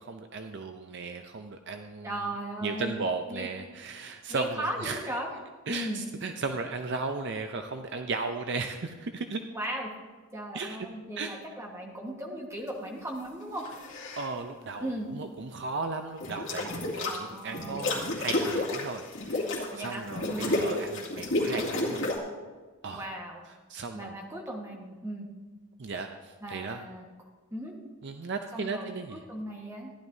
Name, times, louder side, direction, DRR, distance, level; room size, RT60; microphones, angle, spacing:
voice 1, 0.0-2.2 2.6-5.0 5.7-9.4 10.5-10.8 11.2-11.3 14.2-22.0 22.8-23.1 23.7-24.1 25.8-26.8 28.0-29.2, right 4 dB, 50° right, 6 dB, 0.5 m, -36 dB
voice 2, 2.0-2.9 3.3-3.5 4.3-5.3 5.7-6.0 9.5-9.9 10.3-13.7 14.8-15.1 17.0-17.9 19.7-20.6 22.9-23.4 23.9-25.3 26.4-27.0 27.5-27.7 28.5-29.9, right 1 dB, 15° right, 0 dB, 1.4 m, -37 dB
sound 1, 13.6-14.3 16.2-17.2 17.5-22.2, left 2 dB, 55° left, 2.3 m, -31 dB
14.5 x 11.0 x 2.7 m, 1.3 s
head